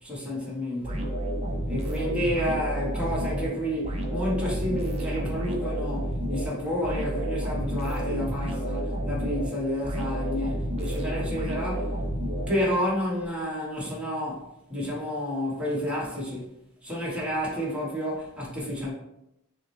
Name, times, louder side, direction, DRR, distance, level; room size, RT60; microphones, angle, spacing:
voice 1, 0.0-1.1 1.7-12.0 12.5-16.5 16.8-18.9, equal, 5° right, 1.0 m, -30 dB
sound 1, 0.8-13.0, right 1 dB, 30° right, 0.5 m, -30 dB
5.8 x 2.1 x 3.0 m
head